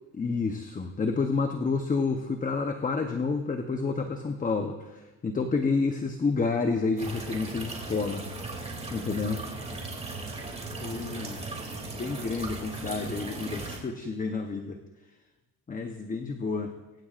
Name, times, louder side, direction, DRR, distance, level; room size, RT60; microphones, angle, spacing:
voice 1, 0.2-8.2 8.9-9.4 9.7-9.8 10.8-11.4 11.9-14.8 15.7-16.7, left 4 dB, 20° left, 5 dB, 0.9 m, -29 dB
sound 1, 7.0-13.8, right 2 dB, 15° right, 2.7 m, -37 dB
24.5 x 15.0 x 2.5 m, 1.1 s
cardioid pair, 135°, 42 cm